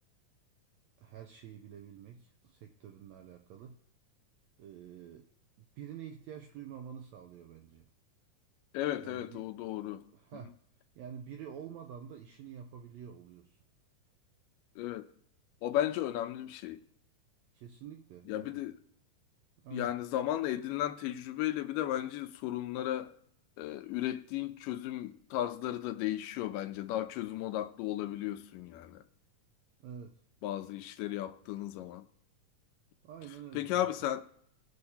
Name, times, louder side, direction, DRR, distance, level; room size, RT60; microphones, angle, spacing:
voice 1, 1.0-3.7 4.6-5.3 5.6-7.9 9.0-9.4 10.1-10.5 11.0-13.6 17.5-18.6 19.6-19.9 29.8-30.2 33.0-33.9, right 8 dB, 80° right, 1.6 m, -48 dB
voice 2, 8.7-10.0 14.8-15.1 15.6-16.8 18.3-18.8 19.7-23.1 23.6-29.0 30.4-32.1 33.5-34.2, left 13 dB, 85° left, 2.2 m, -35 dB
19.5 x 6.5 x 2.8 m
omnidirectional pair, 3.9 m